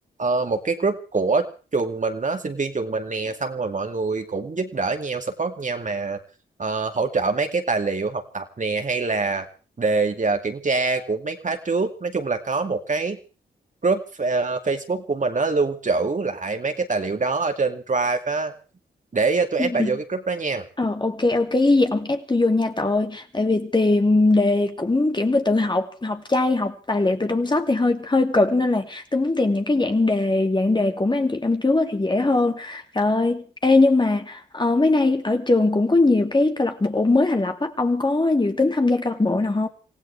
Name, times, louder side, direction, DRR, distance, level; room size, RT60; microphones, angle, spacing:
voice 1, 0.2-1.5 1.7-6.2 6.6-9.5 9.8-13.2 13.8-18.5 19.1-20.6, right 4 dB, 45° right, 2.4 m, -24 dB
voice 2, 19.6-19.9 20.8-39.7, left 2 dB, 25° left, 2.5 m, -21 dB
26.5 x 16.0 x 3.4 m
cardioid pair, 55°, 19 cm